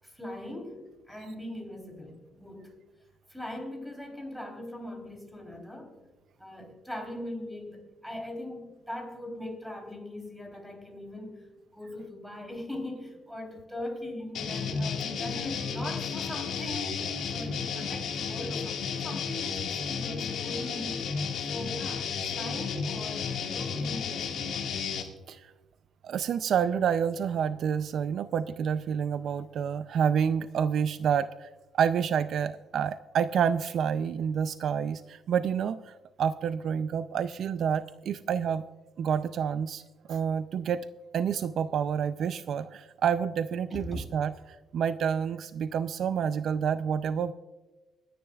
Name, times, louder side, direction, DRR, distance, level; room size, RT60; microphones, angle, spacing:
voice 1, 0.0-2.8 3.3-5.9 6.4-21.1 21.5-24.4 43.7-44.1, left 1 dB, ahead, 3 dB, 3.3 m, -40 dB
sound 1, 14.3-25.0, left 6 dB, 65° left, 1.8 m, -33 dB
voice 2, 26.0-31.5 31.7-38.6 39.0-39.8 40.1-40.9 41.1-44.3 44.7-47.3, right 7 dB, 60° right, 13 dB, 0.4 m, -28 dB
25.0 x 10.0 x 2.3 m, 1.2 s
cardioid pair, 110°, 0 cm